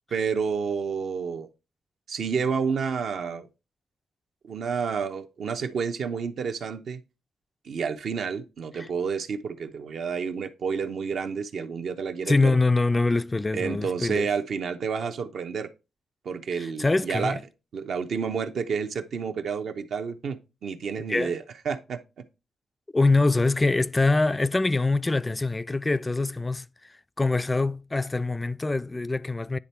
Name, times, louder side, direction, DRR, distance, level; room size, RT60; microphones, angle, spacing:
voice 1, 0.1-1.5 2.1-3.5 4.4-7.0 7.6-12.6 13.5-15.7 16.2-17.4 17.7-22.0, right 6 dB, 70° right, 0.8 m, -30 dB
voice 2, 12.3-14.3 16.6-17.4 21.1-21.4 22.9-26.7 27.2-29.6, left 3 dB, 20° left, 0.3 m, -24 dB
9.8 x 3.4 x 4.3 m
cardioid pair, 75°, 0 cm